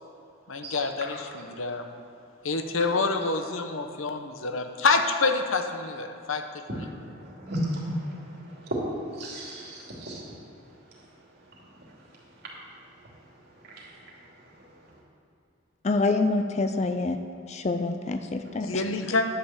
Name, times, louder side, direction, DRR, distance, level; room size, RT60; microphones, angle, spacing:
voice 1, 0.5-1.9 2.4-6.4 6.7-6.9 18.6-19.2, left 3 dB, 85° left, 6 dB, 0.9 m, -27 dB
voice 2, 7.0-8.0 9.2-10.2 13.7-13.9 18.5-18.6, equal, 55° right, -4 dB, 2.7 m, -34 dB
voice 3, 15.8-17.2 17.5-18.8, left 3 dB, 35° left, 8 dB, 0.4 m, -26 dB
10.5 x 6.7 x 7.2 m, 2.6 s
head